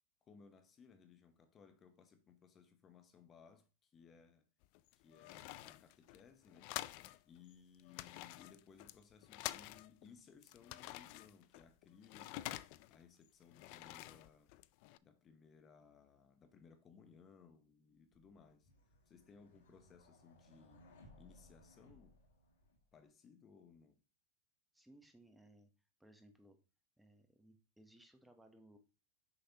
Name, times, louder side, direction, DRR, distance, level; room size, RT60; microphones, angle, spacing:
voice 1, 0.2-4.4 5.0-6.8 7.2-14.5 15.0-18.7 19.1-22.2 22.9-24.0, left 6 dB, 25° left, 0.8 m, -63 dB
sound 1, 4.6-7.2 7.5-7.6 7.8-10.1 10.4-13.0 13.4-15.0, left 17 dB, 55° left, 0.3 m, -48 dB
sound 2, 18.1-23.0, left 1 dB, 75° left, 2.0 m, -64 dB
voice 2, 24.7-25.7 26.0-26.6 27.0-28.8, right 1 dB, 5° right, 0.9 m, -63 dB
6.7 x 5.7 x 2.8 m
hypercardioid pair, 120°, 0 cm